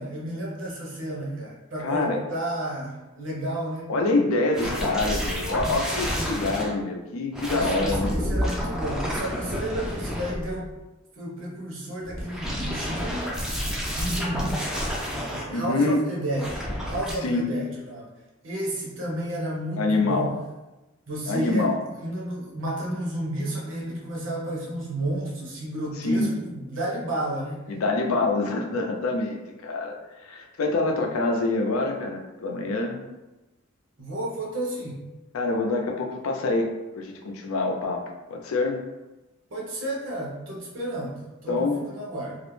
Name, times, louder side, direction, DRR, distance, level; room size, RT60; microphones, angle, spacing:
voice 1, 0.0-3.9 4.6-4.8 6.1-6.3 7.5-10.7 11.2-13.3 14.0-14.6 15.5-18.1 18.4-20.3 21.1-21.7 22.0-27.6 34.0-35.0 39.5-42.4, right 1 dB, 65° right, -4 dB, 0.8 m, -32 dB
voice 2, 1.8-2.2 3.9-8.1 15.5-16.0 17.2-17.5 19.8-20.3 21.3-21.8 26.0-26.3 27.7-29.9 30.2-33.0 35.3-38.8 41.5-41.9, left 2 dB, 90° left, 2 dB, 0.4 m, -26 dB
sound 1, 4.5-6.7 7.3-10.8 12.0-15.4 16.3-17.1, equal, 5° right, 0.3 m, -29 dB
2.4 x 2.0 x 3.1 m, 1.0 s
head